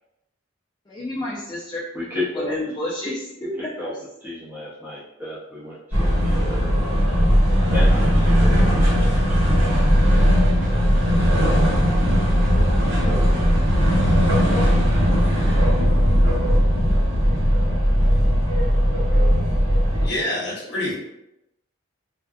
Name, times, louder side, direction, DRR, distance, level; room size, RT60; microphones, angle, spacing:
voice 1, 0.9-1.8 2.3-3.7 13.0-13.3, left 1 dB, 20° left, -8 dB, 0.4 m, -30 dB
voice 2, 1.9-2.5 3.6-3.9 4.2-6.7 7.7-9.2, left 1 dB, 10° right, -9 dB, 0.7 m, -33 dB
sound 1, 5.9-20.1, equal, 75° right, 1.3 m, -18 dB
sound 2, 7.5-14.7, right 2 dB, 45° right, 0.4 m, -37 dB
voice 3, 19.9-20.9, left 1 dB, 55° left, -4 dB, 0.7 m, -27 dB
2.5 x 2.2 x 2.3 m, 0.87 s
head